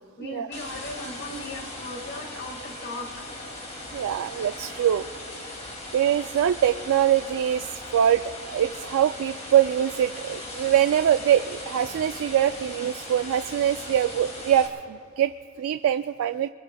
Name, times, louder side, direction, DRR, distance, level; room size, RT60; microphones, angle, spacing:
voice 1, 0.2-3.1, left 2 dB, 50° left, 3 dB, 1.9 m, -37 dB
sound 1, 0.5-14.7, left 1 dB, 30° left, 2.4 m, -39 dB
voice 2, 3.9-5.0 5.9-16.5, right 10 dB, 65° right, 10 dB, 0.3 m, -23 dB
24.0 x 22.5 x 2.3 m, 2.3 s
head